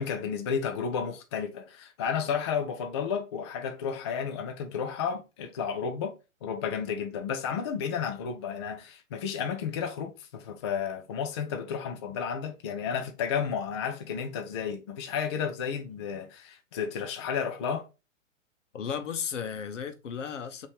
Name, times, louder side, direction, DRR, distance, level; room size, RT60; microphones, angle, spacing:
voice 1, 0.0-6.1 6.4-17.9, left 7 dB, 25° left, 0.3 m, -32 dB
voice 2, 18.7-20.7, left 7 dB, 65° left, 0.9 m, -34 dB
5.1 x 2.9 x 3.3 m
figure-of-eight pair, 115°, 39 cm